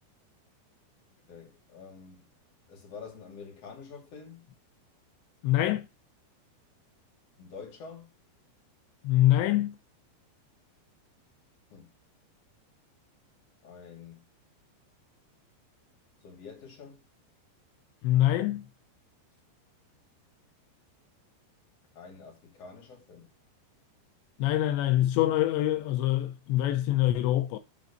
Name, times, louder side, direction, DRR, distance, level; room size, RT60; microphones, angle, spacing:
voice 1, 1.3-2.2 2.7-4.5 7.4-8.1 11.7-11.9 13.6-14.3 16.2-17.0 21.9-23.3, left 5 dB, 40° left, 2.9 m, -47 dB
voice 2, 5.4-5.9 9.0-9.8 18.0-18.7 24.4-27.6, left 14 dB, 85° left, 2.9 m, -25 dB
11.0 x 4.0 x 6.8 m
omnidirectional pair, 5.1 m